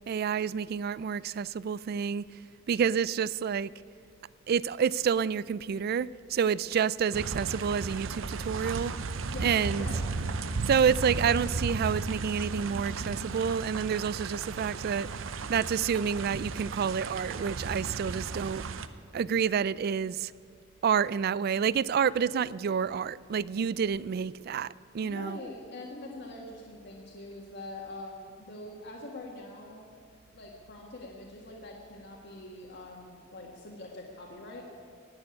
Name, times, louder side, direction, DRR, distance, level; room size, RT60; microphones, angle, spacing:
voice 1, 0.1-2.2 2.7-3.7 4.5-8.9 9.4-9.9 10.7-15.1 15.5-18.7 19.1-20.3 20.8-25.4, right 7 dB, 50° right, 0.3 m, -28 dB
sound 1, 7.1-18.9, right 4 dB, 85° right, 0.7 m, -35 dB
voice 2, 9.3-10.0 25.0-29.8 30.3-34.7, left 2 dB, 60° left, 1.7 m, -44 dB
18.0 x 6.9 x 9.8 m
head